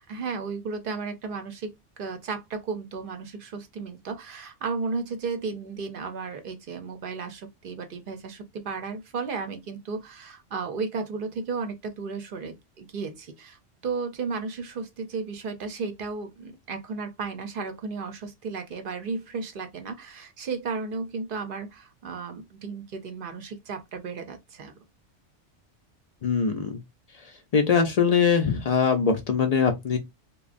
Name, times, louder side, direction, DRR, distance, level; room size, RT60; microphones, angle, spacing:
voice 1, 0.0-24.8, right 4 dB, 55° right, 0.7 m, -34 dB
voice 2, 26.2-26.8 27.5-30.0, left 6 dB, 65° left, 0.3 m, -22 dB
3.0 x 2.1 x 2.5 m
omnidirectional pair, 1.2 m